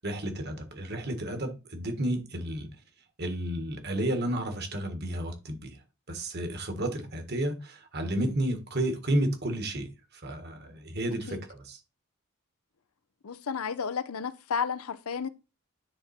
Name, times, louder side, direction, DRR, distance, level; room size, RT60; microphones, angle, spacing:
voice 1, 0.0-2.7 3.2-5.8 6.1-11.8, right 1 dB, 50° right, 1.5 m, -32 dB
voice 2, 13.2-15.3, left 6 dB, 85° left, 0.6 m, -32 dB
10.0 x 3.7 x 4.2 m
head